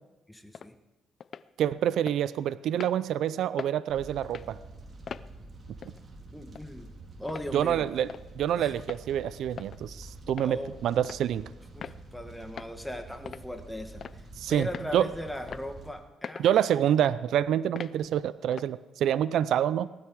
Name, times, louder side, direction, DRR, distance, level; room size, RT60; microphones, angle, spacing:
voice 1, 0.3-0.7 6.3-6.9 7.2-7.9 8.6-8.7 10.4-10.7 11.7-14.0 14.5-16.7, left 1 dB, 5° left, 6 dB, 1.6 m, -38 dB
sound 1, 0.5-0.7 1.2-1.5 2.1-2.2 2.8-3.0 3.6-3.8 4.2-4.5 5.1-5.3 5.8-6.0 6.6-6.7 7.3-7.5 8.1-8.3 8.8-9.0 9.6-9.8 10.3-10.5 11.0-11.2 11.8-12.0 12.6-12.7 13.3-13.5 14.0-14.3 14.7-14.9 15.5-15.7 16.2-16.5 17.0-17.1 17.8-18.0 18.5-18.7, left 7 dB, 50° left, 0.5 m, -41 dB
voice 2, 1.6-4.6 7.5-8.1 8.3-11.5 14.4-14.7 14.9-15.0 16.4-19.9, right 10 dB, 75° right, 16 dB, 0.4 m, -27 dB
Fire, 3.9-15.9, right 2 dB, 40° right, 3.8 m, -48 dB
19.0 x 13.0 x 4.7 m, 1.1 s
cardioid pair, 90°, 0 cm